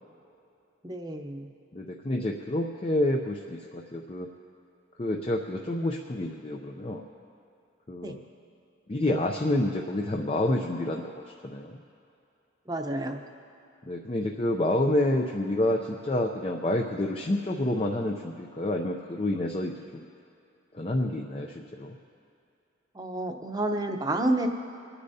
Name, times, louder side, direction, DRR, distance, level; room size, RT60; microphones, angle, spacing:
voice 1, 0.8-1.5 8.0-8.1 12.7-13.2 22.9-24.5, right 1 dB, 20° right, 4 dB, 0.8 m, -30 dB
voice 2, 1.7-4.3 5.0-7.1 7.9-8.2 8.9-11.8 13.8-20.0 20.7-22.0, left 1 dB, 30° left, 1 dB, 0.5 m, -28 dB
29.5 x 9.9 x 2.7 m, 2.6 s
head